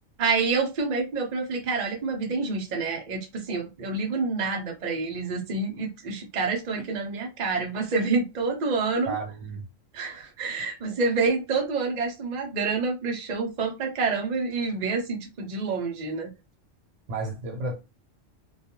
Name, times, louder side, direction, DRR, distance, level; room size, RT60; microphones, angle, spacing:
voice 1, 0.2-9.2 9.9-16.3, right 4 dB, 45° right, 0.6 m, -28 dB
voice 2, 9.1-9.6 17.1-17.7, right 3 dB, 70° right, 1.1 m, -32 dB
2.3 x 2.3 x 2.8 m
omnidirectional pair, 1.3 m